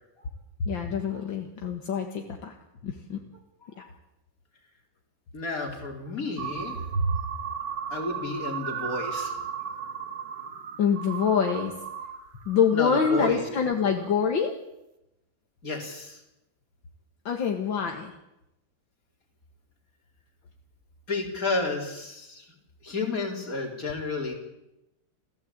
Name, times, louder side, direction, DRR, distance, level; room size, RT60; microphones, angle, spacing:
voice 1, 0.6-2.5 2.8-3.2 10.8-11.7 12.5-14.5 17.3-18.1, left 6 dB, 70° left, 3 dB, 2.5 m, -25 dB
voice 2, 5.3-6.8 7.9-9.4 12.7-13.5 15.6-16.2 21.1-22.5 22.8-24.3, left 3 dB, 40° left, 2 dB, 4.6 m, -31 dB
sound 1, 6.4-12.2 12.5-13.3 13.8-14.1, right 5 dB, 60° right, 2.0 m, -34 dB
28.5 x 16.0 x 8.8 m, 0.91 s
omnidirectional pair, 2.2 m